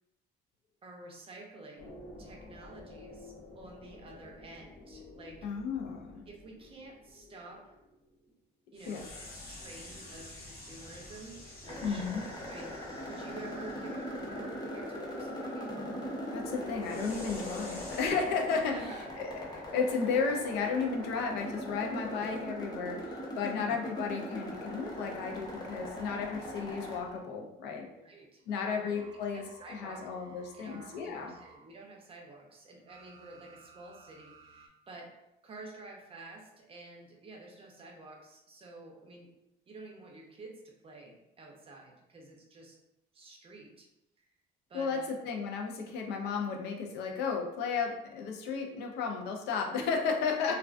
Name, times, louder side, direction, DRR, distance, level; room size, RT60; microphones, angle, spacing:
voice 1, 0.8-5.5 6.3-7.8 8.7-12.1 12.5-15.7 18.7-19.1 27.9-28.4 28.7-29.1 29.3-30.0 30.5-35.1 35.4-39.3 39.7-42.8 43.1-43.9 44.7-45.1 50.5-50.6, right 2 dB, 35° right, 1 dB, 0.5 m, -50 dB
sound 1, 1.8-8.2 8.7-14.2 16.8-18.1, left 2 dB, 60° left, 0.7 m, -50 dB
voice 2, 5.4-6.2 8.9-9.0 11.8-12.2 16.3-18.8 19.2-27.8 28.5-31.3 44.7-50.6, left 5 dB, 85° left, 2 dB, 0.4 m, -33 dB
sound 2, 11.6-27.0, equal, 25° left, 0.7 m, -40 dB
sound 3, 16.3-19.6 20.0-23.6 24.1-27.7 28.8-31.6 32.9-34.7, right 2 dB, 90° right, 0.4 m, -55 dB
2.3 x 2.2 x 2.4 m, 0.91 s
cardioid pair, 110°, 17 cm